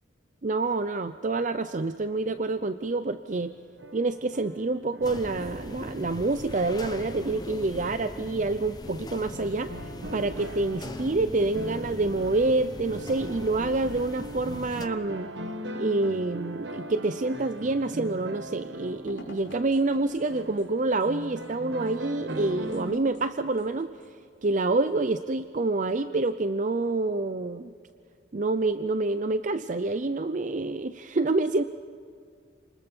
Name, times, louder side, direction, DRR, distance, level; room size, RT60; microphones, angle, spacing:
voice 1, 0.4-3.5 3.9-9.7 10.1-15.3 15.7-23.9 24.4-27.7 28.3-31.6, right 2 dB, 40° right, 11 dB, 0.5 m, -27 dB
sound 1, 3.3-7.9 8.4-8.5 9.3-22.9, right 1 dB, 65° right, 1.3 m, -41 dB
sound 2, 5.0-14.9, left 1 dB, 20° left, 1.0 m, -41 dB
sound 3, 17.3-25.5, left 1 dB, 70° left, 4.0 m, -52 dB
29.0 x 20.5 x 5.5 m, 2.2 s
head